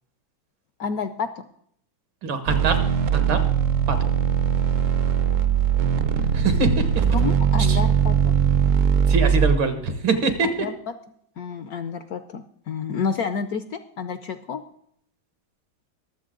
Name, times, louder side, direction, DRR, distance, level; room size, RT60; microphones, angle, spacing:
voice 1, 0.8-1.5 7.1-8.3 10.4-10.7 11.4-14.6, left 5 dB, 70° left, 11 dB, 0.9 m, -29 dB
voice 2, 2.2-2.8 3.1-3.4 3.9-4.1 6.3-7.1 7.6-7.8 9.1-10.5, right 3 dB, 85° right, 8 dB, 2.3 m, -24 dB
sound 1, 2.5-9.6, right 7 dB, 65° right, 0.7 m, -20 dB
22.0 x 7.7 x 3.8 m, 0.68 s
omnidirectional pair, 2.1 m